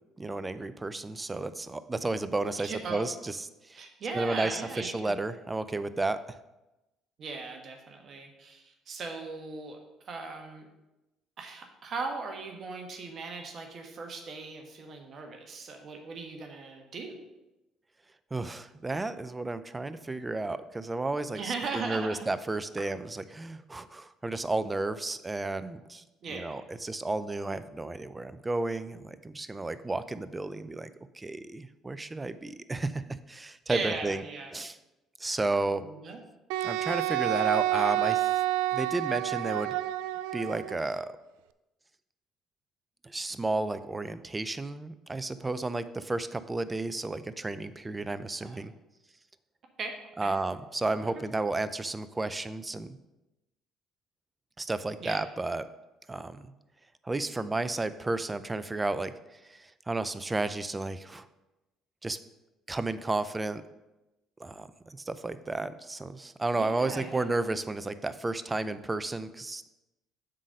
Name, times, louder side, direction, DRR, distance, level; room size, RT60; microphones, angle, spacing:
voice 1, 0.2-3.8 4.1-6.2 18.3-21.5 21.8-26.0 26.3-34.2 34.5-34.8 35.2-35.8 36.6-38.3 38.7-39.8 40.3-41.1 43.0-48.7 50.2-53.0 54.6-55.7 56.1-56.5 57.0-61.3 62.0-62.2 62.7-63.6 64.4-69.7, right 2 dB, 20° right, 13 dB, 0.5 m, -32 dB
voice 2, 2.6-3.1 3.7-5.1 7.2-9.8 10.1-10.7 11.4-17.2 21.3-22.3 26.2-26.6 33.7-34.6 35.8-36.2 48.4-48.6 49.8-50.3 50.9-51.2 55.0-55.2 66.5-67.3, right 4 dB, 50° right, 3 dB, 1.4 m, -38 dB
Wind instrument woodwind instrument, 36.5-40.8, right 15 dB, 80° right, 0.3 m, -29 dB
7.5 x 4.0 x 6.4 m, 0.98 s
supercardioid pair, 65°, 0 cm